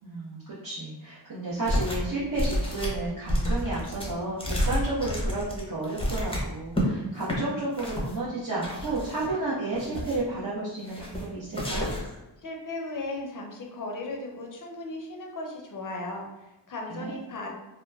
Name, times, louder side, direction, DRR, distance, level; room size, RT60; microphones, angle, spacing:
voice 1, 0.0-11.9 16.9-17.1, right 2 dB, 45° right, -10 dB, 1.0 m, -32 dB
sound 1, 1.6-2.1 2.3-6.9 7.2-7.4 7.8-8.1 8.6-9.3 9.7-10.3 10.8-11.2 11.5-12.2, equal, 10° left, 0.7 m, -30 dB
voice 2, 12.4-17.5, left 2 dB, 45° left, 1 dB, 0.6 m, -36 dB
2.9 x 2.1 x 2.3 m, 0.98 s
cardioid pair, 60°, 45 cm